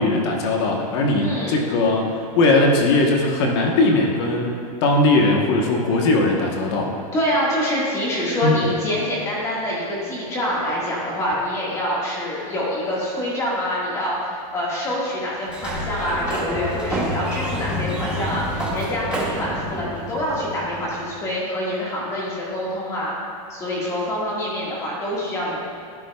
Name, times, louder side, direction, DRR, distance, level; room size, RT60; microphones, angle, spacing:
voice 1, 0.0-6.9 8.4-8.6, left 2 dB, 45° left, 1 dB, 1.1 m, -19 dB
voice 2, 1.2-1.6 7.1-23.1 23.5-25.6, left 1 dB, 15° left, -5 dB, 1.6 m, -26 dB
Sliding door, 15.4-21.1, equal, 5° right, 0.8 m, -28 dB
11.5 x 9.9 x 2.3 m, 2.5 s
supercardioid pair, 165°, 19 cm